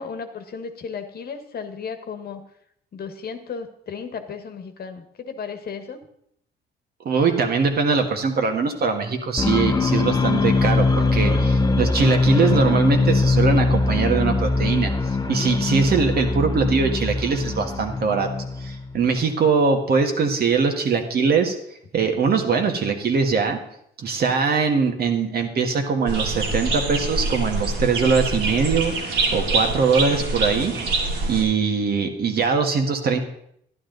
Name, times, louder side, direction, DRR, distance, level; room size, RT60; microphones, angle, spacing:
voice 1, 0.0-2.4 2.9-6.0 32.2-32.4, left 6 dB, 55° left, 8 dB, 1.3 m, -34 dB
voice 2, 7.0-14.9 15.3-18.3 18.6-21.5 21.9-23.6 24.0-30.7 31.3-33.2, right 5 dB, 55° right, 4 dB, 1.7 m, -22 dB
sound 1, 9.4-19.0, left 3 dB, 20° left, 0.9 m, -21 dB
sound 2, 26.1-31.4, right 3 dB, 80° right, 2.8 m, -25 dB
11.5 x 11.5 x 4.0 m, 0.73 s
cardioid pair, 100°, 19 cm